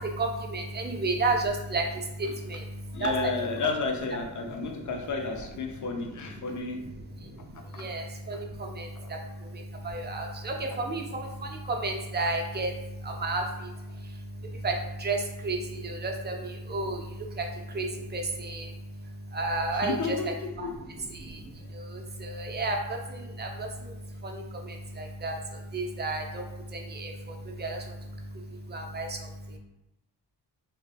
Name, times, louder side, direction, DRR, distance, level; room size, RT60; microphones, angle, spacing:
voice 1, 0.2-1.8 2.5-2.6 3.0-3.3 7.8-8.4 8.8-8.9 9.8-11.0 11.7-12.7 13.2-13.4 14.6-14.7 15.0-15.2 15.4-16.4 16.7-17.0 17.4-17.5 17.7-18.6 19.3-20.2 22.2-22.8 23.4-23.7 25.2-25.4 25.7-26.4 26.9-27.1 27.6-27.8 28.7-29.1, right 3 dB, 25° right, 1 dB, 0.5 m, -30 dB
voice 2, 2.9-6.8 7.7-7.9 8.3-8.4 9.0-9.1 19.8-20.3 20.6-20.7, left 4 dB, 45° left, 3 dB, 0.6 m, -32 dB
3.1 x 2.9 x 2.2 m, 0.91 s
cardioid pair, 65°, 43 cm